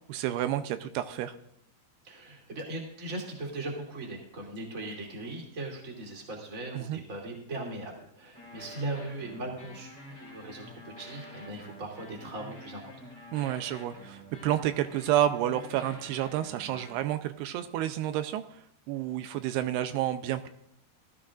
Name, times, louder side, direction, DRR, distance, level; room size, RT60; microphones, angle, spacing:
voice 1, 0.1-1.4 6.7-7.0 13.3-18.6 18.9-20.5, right 12 dB, 85° right, 9 dB, 2.7 m, -30 dB
voice 2, 2.0-13.0, right 2 dB, 25° right, -1 dB, 2.3 m, -39 dB
sound 1, 8.3-17.0, left 1 dB, 5° left, 1.3 m, -48 dB
18.5 x 13.0 x 2.5 m, 0.70 s
omnidirectional pair, 4.6 m